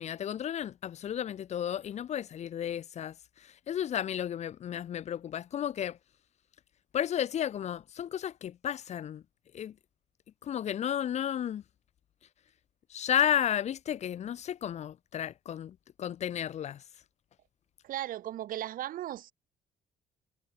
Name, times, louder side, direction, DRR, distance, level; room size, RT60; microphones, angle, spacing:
voice 1, 0.0-3.1 3.7-6.0 6.9-9.2 9.5-9.7 10.4-11.6 12.9-16.8, left 10 dB, 50° left, 0.5 m, -33 dB
voice 2, 17.8-19.3, right 13 dB, 70° right, 1.3 m, -36 dB
cardioid pair, 90°, 15 cm